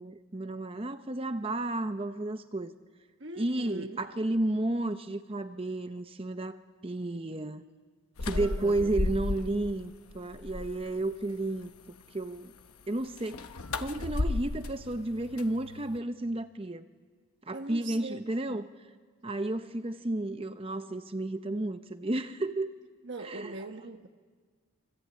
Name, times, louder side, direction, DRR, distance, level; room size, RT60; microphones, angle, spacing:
voice 1, 0.0-2.8 3.4-7.6 8.2-11.7 12.1-12.5 12.9-13.5 13.8-16.9 17.5-18.7 19.2-22.7 23.2-23.6, right 2 dB, 25° right, 0.7 m, -32 dB
voice 2, 3.2-4.0 8.3-9.0 17.5-18.2 18.5-18.6 23.0-24.1, right 2 dB, 55° right, 1.2 m, -42 dB
sound 1, 8.2-9.7 10.1-11.0 13.2-16.0, left 2 dB, 90° left, 1.0 m, -34 dB
26.0 x 26.0 x 8.6 m
head